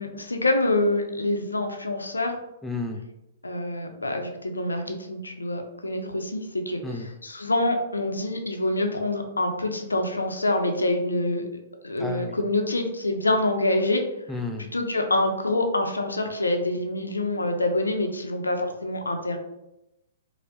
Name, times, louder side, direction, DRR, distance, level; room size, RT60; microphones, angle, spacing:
voice 1, 0.0-2.3 3.4-11.4 11.8-14.0 14.6-19.4, left 2 dB, 90° left, 4 dB, 0.5 m, -26 dB
voice 2, 2.6-3.0 6.8-7.1 12.0-12.4 14.3-14.7, left 3 dB, 5° left, 2 dB, 0.3 m, -32 dB
4.2 x 2.0 x 2.6 m, 0.90 s
figure-of-eight pair, 120°, 0 cm